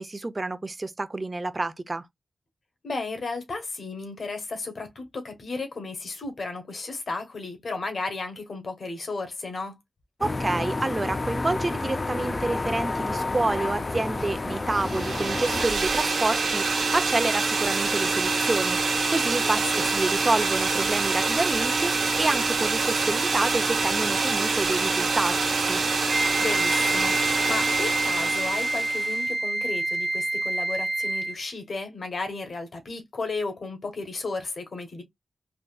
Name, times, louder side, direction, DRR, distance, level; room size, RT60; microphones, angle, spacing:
voice 1, 0.0-2.1 10.2-25.3 25.7-25.8, right 2 dB, 40° right, 0.6 m, -28 dB
voice 2, 2.8-9.7 19.8-19.9 26.4-35.0, left 3 dB, 70° left, 1.1 m, -34 dB
sound 1, 10.2-15.7, left 2 dB, 45° left, 0.5 m, -30 dB
sound 2, 14.7-29.2, right 4 dB, 90° right, 1.2 m, -25 dB
Wind instrument woodwind instrument, 26.1-31.5, right 2 dB, 20° right, 1.2 m, -27 dB
3.5 x 2.5 x 2.3 m
cardioid pair, 50°, 0 cm